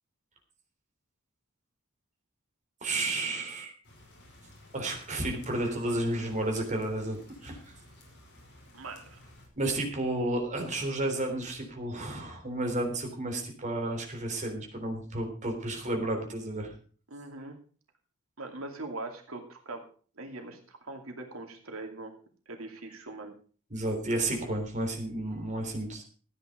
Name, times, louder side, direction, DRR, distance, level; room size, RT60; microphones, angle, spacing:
voice 1, 2.8-3.7 4.7-7.6 9.6-16.7 23.7-26.0, right 1 dB, 35° right, 3 dB, 3.6 m, -32 dB
sound 1, 3.8-9.5, left 1 dB, 55° left, 5.1 m, -54 dB
voice 2, 8.7-9.2 17.1-17.6 18.4-19.9 20.2-22.1 22.5-23.3, right 2 dB, 80° right, 3 dB, 2.5 m, -41 dB
14.0 x 9.7 x 5.1 m, 0.41 s
head